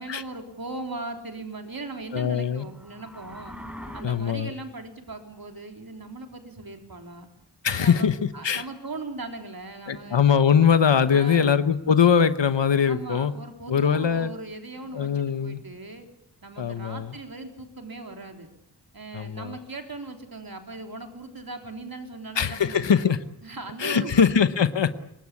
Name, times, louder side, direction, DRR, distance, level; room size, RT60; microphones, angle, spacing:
voice 1, 0.0-3.6 3.9-7.3 7.7-8.1 8.3-10.2 11.1-11.6 12.9-16.1 16.4-18.5 18.9-23.1 23.4-24.2, right 3 dB, 55° right, 5 dB, 3.7 m, -39 dB
voice 2, 2.1-2.7 4.0-4.5 7.6-8.6 9.9-13.3 13.7-14.3 14.9-15.6 16.6-17.1 19.1-19.6 22.3-23.2 23.8-24.9, left 7 dB, 85° left, 11 dB, 1.1 m, -22 dB
sound 1, 2.6-4.0, equal, 5° right, 4.0 m, -41 dB
25.0 x 20.5 x 8.5 m, 0.79 s
wide cardioid pair, 80°, 42 cm